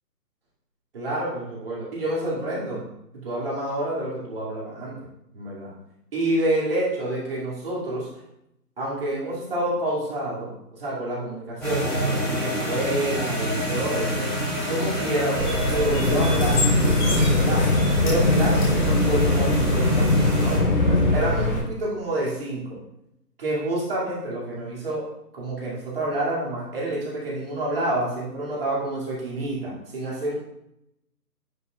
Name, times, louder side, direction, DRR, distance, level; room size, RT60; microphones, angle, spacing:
voice 1, 0.9-2.8 3.1-5.1 5.3-5.7 6.1-8.1 8.8-10.5 10.8-14.3 14.7-17.6 18.0-22.8 23.4-25.0 25.3-30.3, right 1 dB, 35° right, -6 dB, 2.5 m, -28 dB
slow thunder sheet, 11.6-20.6, equal, ahead, 2.6 m, -28 dB
sound 1, 15.4-21.6, equal, 30° left, 1.5 m, -25 dB
sound 2, 16.0-21.2, left 2 dB, 50° left, 0.6 m, -22 dB
9.4 x 4.8 x 2.4 m, 0.80 s
figure-of-eight pair, 160°, 49 cm